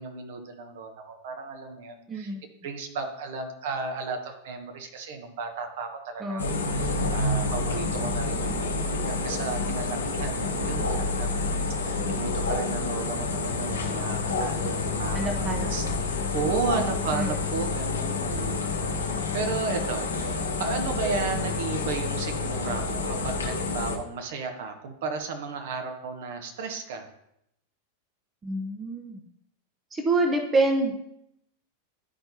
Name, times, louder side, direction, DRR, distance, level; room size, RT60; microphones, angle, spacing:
voice 1, 0.0-2.3 2.6-27.1, right 4 dB, 55° right, 5 dB, 0.9 m, -34 dB
voice 2, 2.1-2.4 6.2-6.5 15.1-15.9 17.1-17.4 28.4-29.2 29.9-30.9, right 2 dB, 20° right, 3 dB, 0.7 m, -27 dB
sound 1, 6.4-24.0, left 3 dB, 70° left, 0.9 m, -28 dB
11.0 x 4.4 x 2.8 m, 0.78 s
figure-of-eight pair, 90°, 0 cm